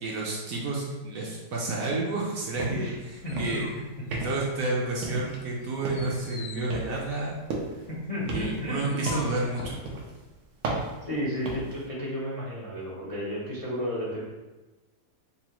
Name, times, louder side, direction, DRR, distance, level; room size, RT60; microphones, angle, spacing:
voice 1, 0.0-2.9 3.4-3.7 4.1-7.3 8.3-9.8, right 2 dB, 65° right, -3 dB, 0.9 m, -30 dB
sound 1, 2.6-2.9 3.2-3.7 4.1-4.6 5.0-5.5 5.8-6.2 6.7-7.9 8.3-9.4 9.9-10.1 10.6-11.8, right 2 dB, 90° right, 1.4 m, -34 dB
voice 2, 2.7-3.4 3.7-3.8 7.9-9.0 11.0-14.2, equal, 60° left, -7 dB, 0.3 m, -33 dB
sound 2, 2.8-4.8 5.2-9.9, left 4 dB, 80° left, 1.2 m, -45 dB
5.4 x 2.2 x 2.9 m, 1.1 s
omnidirectional pair, 1.9 m